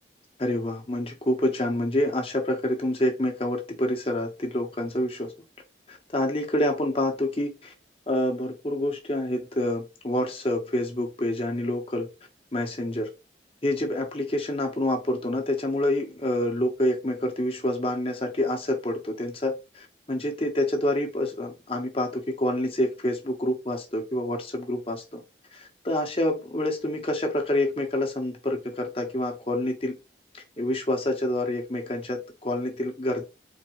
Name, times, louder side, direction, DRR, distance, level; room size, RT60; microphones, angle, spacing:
voice 1, 0.4-5.3 5.9-7.7 8.1-12.1 12.5-13.1 13.6-25.2 25.5-29.9 30.6-33.2, left 1 dB, 30° left, 1.3 m, -27 dB
4.6 x 3.7 x 3.1 m
head